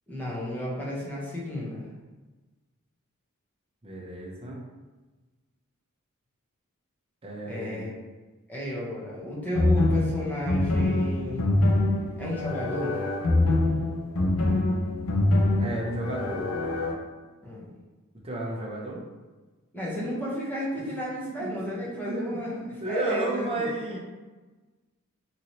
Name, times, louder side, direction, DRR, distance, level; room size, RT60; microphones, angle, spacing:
voice 1, 0.1-1.9 7.4-7.9 8.5-11.4 12.2-13.0 17.4-17.7 19.7-24.0, equal, 10° left, -6 dB, 0.7 m, -33 dB
voice 2, 3.8-4.6 7.2-7.9 15.2-16.5 18.2-19.0 20.8-20.9 21.3-21.5 22.0-22.2 22.8-24.0, right 1 dB, 25° right, -3 dB, 0.6 m, -33 dB
sound 1, 9.5-16.9, left 2 dB, 70° left, 0.5 m, -25 dB
3.0 x 2.8 x 2.7 m, 1.2 s
head